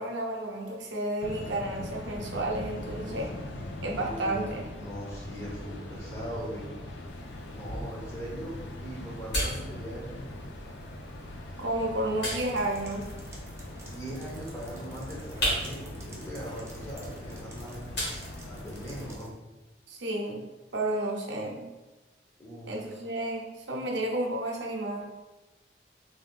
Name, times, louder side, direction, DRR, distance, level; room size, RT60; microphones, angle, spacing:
voice 1, 0.0-3.3 3.8-4.7 11.6-13.1 19.9-20.5 20.7-21.6 22.7-25.1, right 1 dB, 85° right, 0 dB, 0.6 m, -31 dB
sound 1, 1.2-19.2, left 1 dB, 85° left, 0.4 m, -41 dB
voice 2, 4.0-6.7 7.5-10.2 13.8-17.8 18.5-19.4 22.4-22.7, equal, 15° left, -4 dB, 0.7 m, -40 dB
sound 2, 7.1-19.1, equal, 70° left, 1.4 m, -38 dB
sound 3, 12.3-19.3, right 2 dB, 15° right, 0.4 m, -52 dB
3.3 x 2.6 x 2.4 m, 1.1 s
head